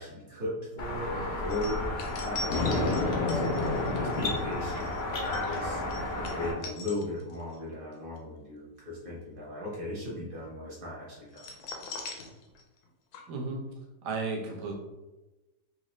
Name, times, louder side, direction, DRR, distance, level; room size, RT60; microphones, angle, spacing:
voice 1, 0.0-3.0 3.3-4.9 5.2-5.8 6.1-11.5, left 1 dB, 35° right, -6 dB, 1.1 m, -37 dB
sound 1, 0.8-6.5, left 2 dB, 55° left, 0.7 m, -33 dB
sound 2, 1.5-7.6 7.9-8.2 11.3-12.9 13.1-13.2, left 2 dB, 75° left, 1.1 m, -42 dB
Thunder, 2.5-5.0, left 3 dB, 90° left, 1.3 m, -30 dB
voice 2, 13.3-13.6 14.0-14.7, right 4 dB, 75° right, -1 dB, 1.2 m, -33 dB
4.0 x 2.5 x 3.0 m, 1.1 s
omnidirectional pair, 1.8 m